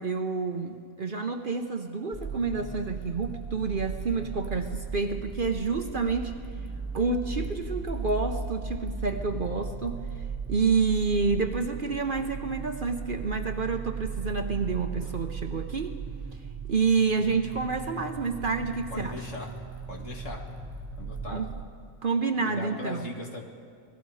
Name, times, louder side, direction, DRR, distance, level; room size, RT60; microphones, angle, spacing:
voice 1, 0.0-6.3 6.9-10.0 10.5-16.0 16.7-19.2 21.3-21.5 22.0-23.1, right 4 dB, 45° right, 5 dB, 0.9 m, -28 dB
sound 1, 2.1-21.6, right 5 dB, 10° right, 4.7 m, -37 dB
voice 2, 18.9-19.6 19.9-20.5 21.0-21.5 22.4-23.4, left 2 dB, 60° left, 1 dB, 2.4 m, -39 dB
28.0 x 19.5 x 4.9 m, 2.1 s
omnidirectional pair, 1.4 m